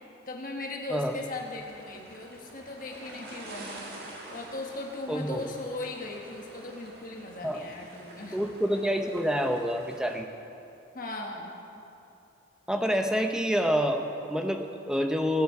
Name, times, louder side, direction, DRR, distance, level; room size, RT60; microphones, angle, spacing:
voice 1, 0.3-3.8 4.3-8.4 10.9-11.5, left 2 dB, 45° left, 1 dB, 1.2 m, -38 dB
sound 1, 1.1-10.2, right 1 dB, 55° right, 1.8 m, -47 dB
voice 2, 5.1-5.5 7.4-7.7 8.3-10.3 12.7-15.4, equal, 5° right, 4 dB, 0.7 m, -27 dB
20.0 x 8.1 x 4.8 m, 2.8 s
head